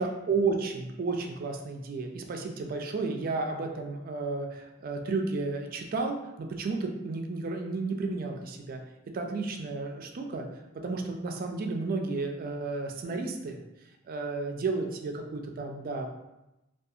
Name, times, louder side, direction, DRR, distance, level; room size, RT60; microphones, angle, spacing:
voice 1, 0.0-6.2 6.6-8.8 9.1-10.5 10.8-13.6 14.1-16.1, right 3 dB, 45° right, 3 dB, 0.3 m, -32 dB
2.4 x 2.3 x 2.7 m, 0.94 s
head